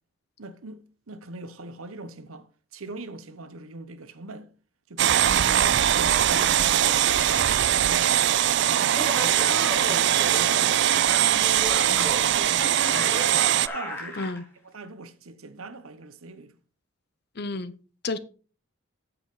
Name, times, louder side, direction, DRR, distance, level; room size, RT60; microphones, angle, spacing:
voice 1, 0.4-2.5 2.7-4.5 4.9-7.3 7.6-8.2 8.7-10.6 12.3-14.3 14.6-16.5, right 2 dB, 85° right, 1.0 m, -42 dB
sound 1, 5.0-13.7, right 11 dB, 55° right, 0.4 m, -21 dB
Laughter, 8.8-14.4, left 1 dB, 10° left, 2.7 m, -35 dB
voice 2, 11.9-12.2 12.9-13.1 14.2-14.4 17.4-17.7 18.0-18.2, left 3 dB, 50° left, 0.8 m, -32 dB
8.7 x 7.5 x 4.0 m
head